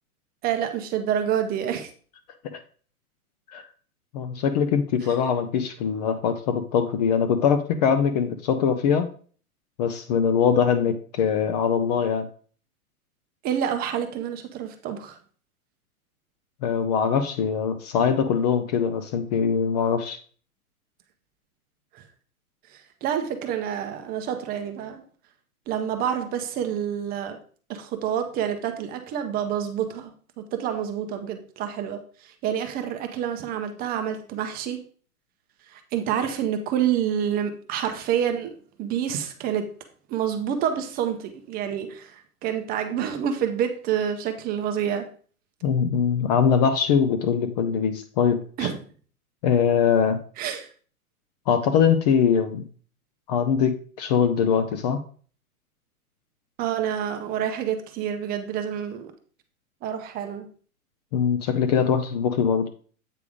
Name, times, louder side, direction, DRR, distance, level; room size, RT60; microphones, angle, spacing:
voice 1, 0.4-1.9 13.4-15.2 21.9-22.0 22.7-25.0 25.7-27.4 27.7-34.8 35.7-38.5 38.8-39.6 40.1-45.1 48.6-48.8 50.4-50.7 56.6-59.1 59.8-60.5, right 9 dB, 20° right, 7 dB, 0.7 m, -28 dB
voice 2, 4.1-9.1 9.8-12.3 16.6-20.2 45.6-48.7 49.4-50.2 51.5-52.6 53.3-55.0 61.1-62.7, left 7 dB, 30° left, 9 dB, 0.5 m, -22 dB
8.5 x 3.5 x 4.9 m, 0.43 s
hypercardioid pair, 120°, 45 cm